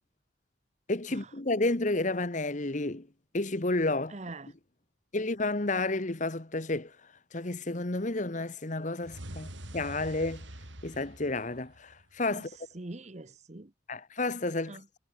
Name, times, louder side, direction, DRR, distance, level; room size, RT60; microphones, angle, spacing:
voice 1, 0.9-3.1 3.3-4.2 5.1-6.9 7.3-10.4 10.8-12.5 13.9-15.0, left 2 dB, 40° left, 1.3 m, -31 dB
voice 2, 4.1-4.5 12.3-13.7 14.7-14.9, right 2 dB, 35° right, 1.0 m, -44 dB
sound 1, 9.0-12.2, right 1 dB, 75° right, 6.2 m, -45 dB
head